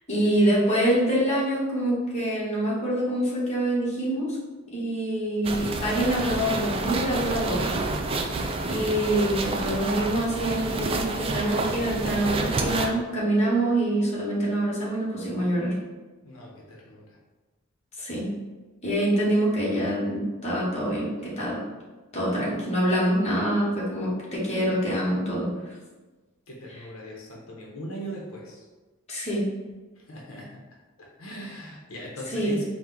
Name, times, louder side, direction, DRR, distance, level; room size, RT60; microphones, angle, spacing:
voice 1, 0.1-4.3 4.7-7.8 8.7-15.7 18.0-18.3 18.8-21.6 22.1-25.5 29.1-29.4 32.3-32.6, right 1 dB, 35° left, -6 dB, 1.2 m, -25 dB
sound 1, 5.4-12.9, right 3 dB, 25° right, 0.3 m, -29 dB
voice 2, 16.2-17.2 26.5-28.6 30.0-30.6 31.0-32.6, equal, 90° left, -3 dB, 0.9 m, -39 dB
4.4 x 2.3 x 3.7 m, 1.2 s
head